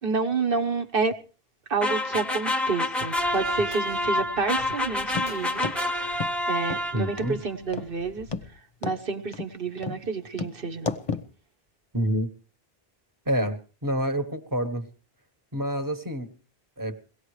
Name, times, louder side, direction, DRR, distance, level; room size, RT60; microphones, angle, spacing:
voice 1, 0.0-1.1 1.7-5.7 6.5-8.3 8.8-10.9, right 4 dB, 60° right, 6 dB, 1.4 m, -29 dB
sound 1, 1.8-7.3, left 1 dB, ahead, 0.7 m, -28 dB
sound 2, 3.2-8.5, right 1 dB, 85° right, 1.9 m, -48 dB
sound 3, 5.1-5.3 5.6-5.8 6.2-6.3 6.7-6.8 7.2-7.3 7.7-7.9 8.3-8.5 8.8-9.0 9.3-9.5 9.8-10.0 10.4-10.5 10.9-11.3, left 5 dB, 35° left, 0.8 m, -31 dB
voice 2, 6.9-7.4 11.9-12.3 13.3-14.9 15.5-16.3 16.8-17.0, equal, 20° right, 6 dB, 1.3 m, -27 dB
22.5 x 17.5 x 3.2 m, 0.37 s
omnidirectional pair, 1.1 m